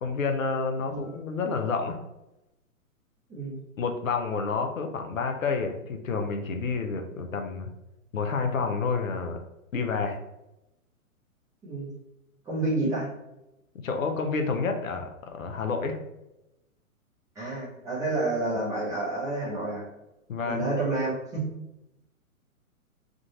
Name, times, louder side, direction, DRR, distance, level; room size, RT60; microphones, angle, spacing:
voice 1, 0.0-2.0 3.8-7.7 8.1-9.4 9.7-10.2 13.8-16.0 20.3-20.7, left 4 dB, 65° left, 5 dB, 0.7 m, -29 dB
voice 2, 0.8-1.1 3.3-3.6 11.6-11.9 12.5-13.1 17.4-19.8 20.4-21.5, right 2 dB, 5° right, -7 dB, 0.6 m, -29 dB
3.7 x 2.4 x 3.9 m, 0.91 s
figure-of-eight pair, 115°, 43 cm